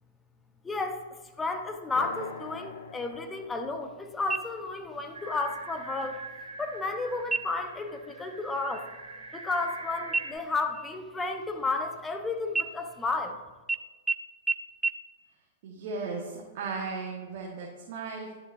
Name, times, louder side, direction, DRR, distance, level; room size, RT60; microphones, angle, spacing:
voice 1, 0.6-1.0 1.4-6.2 6.6-8.9 9.3-13.4, left 3 dB, 15° left, 6 dB, 0.9 m, -32 dB
sound 1, 2.0-5.9, left 5 dB, 60° left, 0.8 m, -45 dB
sound 2, 4.3-5.0 5.4-5.5 6.0-6.5 7.2-7.8 8.1-8.4 8.7-9.8 10.1-12.1 12.5-13.3 13.7-13.8 14.1-14.2 14.5-14.6 14.8-14.9, right 4 dB, 10° right, 0.4 m, -33 dB
sound 3, 5.1-10.3, right 3 dB, 85° right, 1.9 m, -44 dB
voice 2, 15.6-18.3, right 4 dB, 55° right, -2 dB, 1.4 m, -36 dB
11.0 x 6.7 x 2.6 m, 1.3 s
hypercardioid pair, 110°, 0 cm